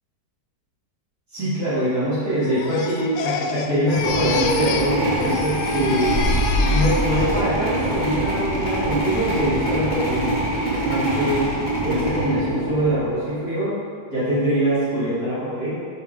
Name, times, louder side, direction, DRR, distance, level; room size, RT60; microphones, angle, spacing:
voice 1, 1.3-6.2 6.7-11.5 11.8-13.7 14.1-15.7, equal, 55° right, -12 dB, 2.5 m, -23 dB
Crying sobbing, 2.4-5.0 5.2-7.4 7.8-8.2, left 6 dB, 90° left, 1.2 m, -29 dB
sound 1, 3.9-13.3, right 1 dB, 15° left, 1.6 m, -25 dB
sound 2, 6.0-11.6, equal, 85° right, 2.4 m, -27 dB
6.0 x 4.9 x 4.7 m, 2.2 s
omnidirectional pair, 1.9 m